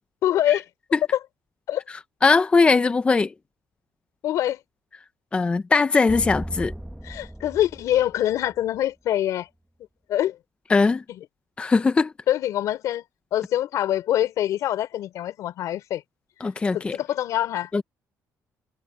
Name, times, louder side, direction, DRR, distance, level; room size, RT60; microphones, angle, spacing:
voice 1, 0.2-0.6 1.7-1.8 4.2-4.6 7.0-9.5 10.1-10.4 12.3-13.0 13.3-16.0 16.7-17.7, left 12 dB, 70° left, 3.4 m, -24 dB
voice 2, 2.2-3.3 5.3-6.7 10.7-11.0 11.6-12.1 16.4-17.0 17.7-17.8, left 4 dB, 20° left, 0.6 m, -20 dB
sound 1, 6.1-8.8, right 1 dB, 5° right, 1.1 m, -36 dB
cardioid pair, 145°, 6 cm